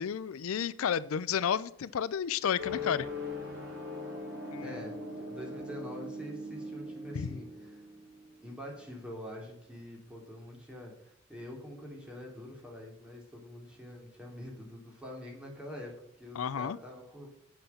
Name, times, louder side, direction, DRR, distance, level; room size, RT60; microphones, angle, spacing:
voice 1, 0.0-3.1 4.5-4.8 7.2-7.4 16.4-16.8, left 8 dB, 90° left, 18 dB, 0.4 m, -32 dB
sound 1, 2.6-9.0, left 2 dB, 70° right, 4.8 m, -41 dB
voice 2, 4.6-7.8 8.4-17.4, left 1 dB, 5° right, -2 dB, 3.0 m, -45 dB
8.2 x 7.8 x 5.7 m, 0.75 s
head